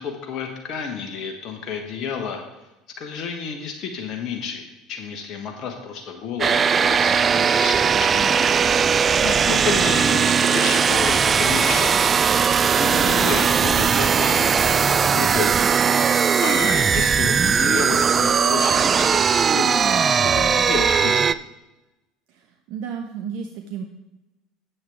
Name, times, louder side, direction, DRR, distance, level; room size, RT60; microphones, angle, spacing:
voice 1, 0.0-2.4 3.0-8.4 9.2-12.2 12.7-14.6 14.9-15.7 16.4-21.3, left 6 dB, 55° left, 3 dB, 1.3 m, -31 dB
sound 1, 6.4-21.3, right 6 dB, 35° right, 0.3 m, -19 dB
voice 2, 22.3-23.8, right 7 dB, 60° right, 4 dB, 0.8 m, -33 dB
9.4 x 7.7 x 3.5 m, 1.0 s
hypercardioid pair, 70°, 0 cm